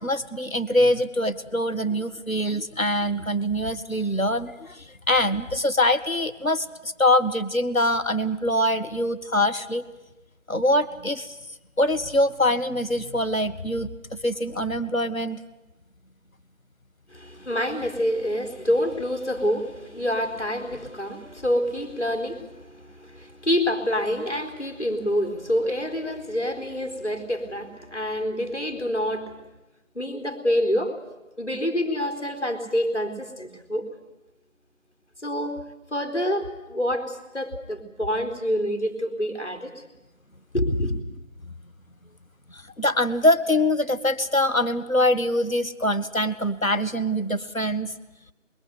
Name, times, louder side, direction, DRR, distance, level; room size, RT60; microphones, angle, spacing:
voice 1, 0.0-9.8 10.5-11.3 11.8-13.9 14.2-15.4 42.8-47.9, left 1 dB, 80° left, 10 dB, 1.9 m, -24 dB
voice 2, 17.1-29.5 29.9-30.9 31.4-33.9 35.2-35.6 35.9-39.8 40.5-40.9, equal, 60° left, 8 dB, 4.3 m, -27 dB
28.0 x 21.5 x 8.2 m, 1.0 s
figure-of-eight pair, 175°, 40 cm